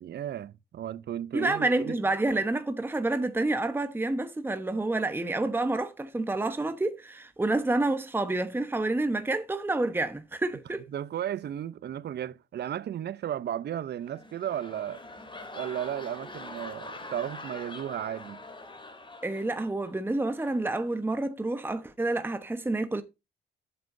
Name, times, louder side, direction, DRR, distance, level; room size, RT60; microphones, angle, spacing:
voice 1, 0.0-2.0 10.9-15.0 15.5-18.4, right 10 dB, 55° right, 0.7 m, -34 dB
voice 2, 1.3-10.8 19.2-23.0, right 2 dB, 10° right, 1.1 m, -28 dB
sound 1, 14.0-19.9 20.3-20.6, left 2 dB, 25° left, 3.2 m, -44 dB
11.0 x 7.7 x 2.7 m
cardioid pair, 90°, 20 cm